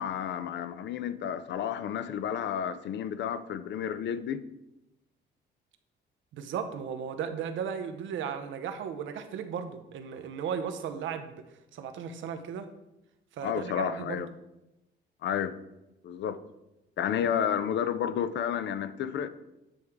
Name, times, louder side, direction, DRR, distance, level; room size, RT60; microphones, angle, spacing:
voice 1, 0.0-4.4 13.4-14.3 15.2-15.5 16.0-16.4 17.0-19.3, left 8 dB, 65° left, 0.5 m, -31 dB
voice 2, 6.3-11.4 11.7-12.7 13.4-14.3, right 7 dB, 75° right, 0.6 m, -35 dB
8.6 x 3.2 x 3.5 m
cardioid pair, 90°, 20 cm